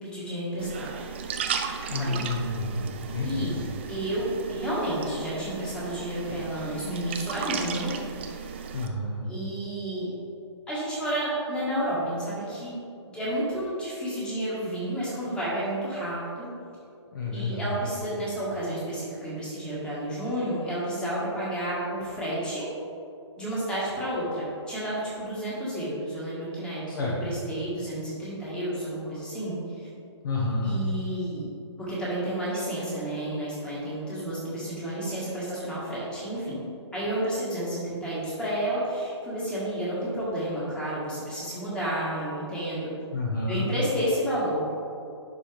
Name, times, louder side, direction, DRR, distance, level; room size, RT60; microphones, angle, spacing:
voice 1, 0.0-0.9 1.9-2.2 3.2-3.5 3.9-7.9 8.3-8.4 9.2-10.1 10.7-12.7 13.0-16.5 17.3-22.6 23.4-29.9 30.6-31.5 31.8-36.6 36.9-42.9 43.5-44.7, right 1 dB, 5° left, -8 dB, 1.5 m, -31 dB
sound 1, 0.6-8.9, right 6 dB, 25° right, 0.3 m, -35 dB
voice 2, 1.9-3.5 8.7-9.3 17.1-17.7 26.9-27.2 30.2-30.7 43.1-43.7, left 2 dB, 45° left, -4 dB, 1.2 m, -29 dB
11.0 x 4.3 x 3.3 m, 2.6 s
hypercardioid pair, 160°, 15 cm